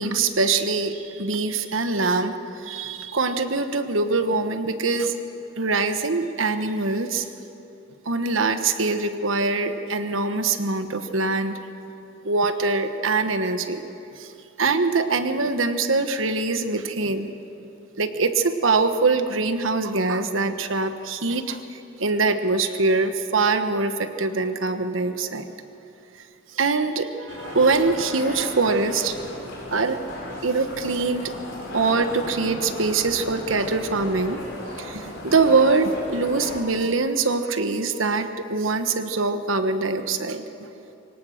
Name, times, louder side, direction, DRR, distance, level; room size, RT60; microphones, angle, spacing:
voice 1, 0.0-5.1 5.6-7.3 8.0-11.5 12.2-13.8 14.2-14.3 14.6-17.3 18.0-21.6 22.0-25.4 26.5-29.2 29.7-30.0 30.4-31.3 31.7-34.4 34.8-40.4, right 3 dB, 90° right, 8 dB, 1.2 m, -23 dB
sound 1, 27.3-36.6, left 1 dB, 60° left, 4.5 m, -35 dB
23.0 x 18.0 x 6.5 m, 2.9 s
head